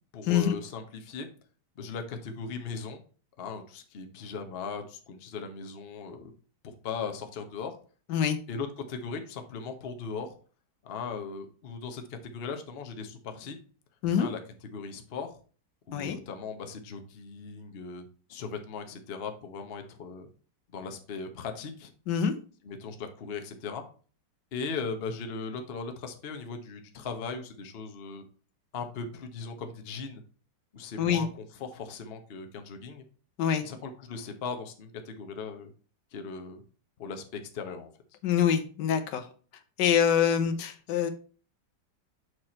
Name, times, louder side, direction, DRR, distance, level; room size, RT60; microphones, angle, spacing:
voice 1, 0.1-1.3 1.8-3.0 3.4-6.3 6.6-7.7 8.5-10.3 10.8-13.6 14.2-14.4 14.7-15.4 15.9-20.3 20.7-21.9 22.6-23.8 24.5-28.2 28.7-30.2 30.7-33.0 33.6-35.7 36.1-36.6 37.0-37.9, left 5 dB, 45° left, 5 dB, 0.9 m, -38 dB
voice 2, 38.2-39.3 39.8-41.1, left 8 dB, 80° left, 9 dB, 1.4 m, -25 dB
6.5 x 4.5 x 4.3 m, 0.40 s
omnidirectional pair, 1.9 m